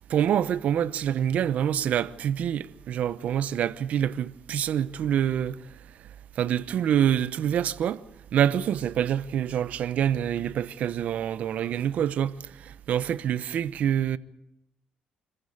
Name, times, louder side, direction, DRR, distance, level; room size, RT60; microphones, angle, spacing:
voice 1, 0.1-5.6 6.4-8.0 8.3-12.4 12.6-14.2, right 9 dB, 65° right, 0.9 m, -26 dB
25.5 x 15.0 x 8.8 m
cardioid pair, 100°, 3 cm